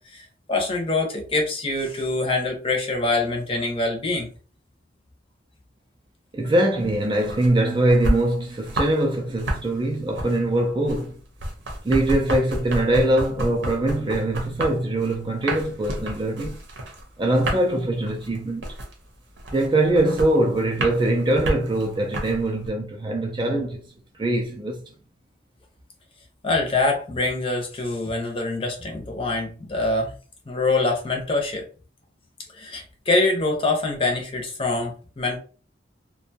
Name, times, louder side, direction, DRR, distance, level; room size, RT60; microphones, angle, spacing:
voice 1, 0.1-4.3 26.4-30.1 30.5-31.6 32.5-35.4, left 2 dB, 30° left, 0.6 m, -24 dB
voice 2, 6.3-11.2 11.8-16.6 17.2-18.7 19.5-23.8 24.2-24.8, right 1 dB, 25° right, 0.3 m, -22 dB
sound 1, 6.8-9.0 9.3-22.7, right 1 dB, 75° right, 0.8 m, -30 dB
2.5 x 2.2 x 2.7 m
head